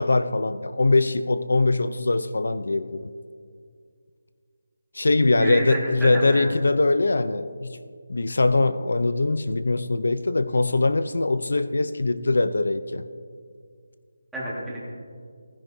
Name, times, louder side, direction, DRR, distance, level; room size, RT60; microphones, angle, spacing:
voice 1, 0.0-3.1 4.9-7.8 8.1-13.1, left 2 dB, 75° left, 13 dB, 0.5 m, -22 dB
voice 2, 5.4-6.5 14.3-14.8, right 1 dB, ahead, -9 dB, 1.7 m, -30 dB
15.5 x 15.0 x 2.7 m, 2.2 s
figure-of-eight pair, 175°, 0 cm